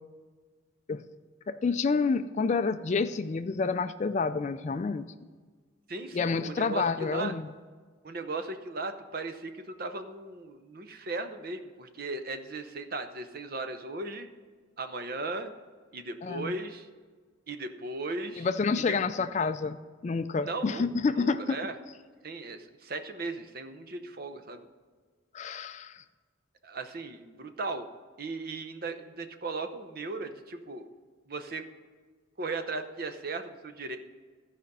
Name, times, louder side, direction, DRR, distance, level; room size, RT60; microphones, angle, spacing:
voice 1, 1.5-5.1 6.1-7.5 16.2-16.5 18.4-19.8 20.0-21.6 25.3-26.0, left 4 dB, 35° left, 11 dB, 0.3 m, -28 dB
voice 2, 5.9-7.3 8.0-14.3 14.8-15.5 15.9-16.9 17.5-18.5 20.4-20.9 21.1-21.7 22.2-24.7 26.6-27.9 28.2-30.9 31.3-31.7 32.4-34.0, right 3 dB, 50° right, 8 dB, 0.7 m, -37 dB
14.5 x 5.1 x 5.5 m, 1.5 s
head